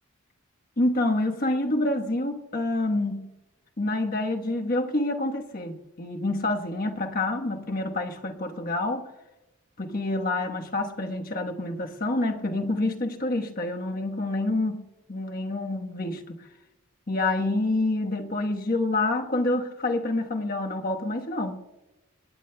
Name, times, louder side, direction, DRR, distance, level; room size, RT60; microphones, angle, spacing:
voice 1, 0.8-3.3 3.8-9.1 9.8-16.5 17.1-21.6, left 2 dB, 40° left, 1.3 m, -27 dB
29.5 x 10.0 x 2.3 m
head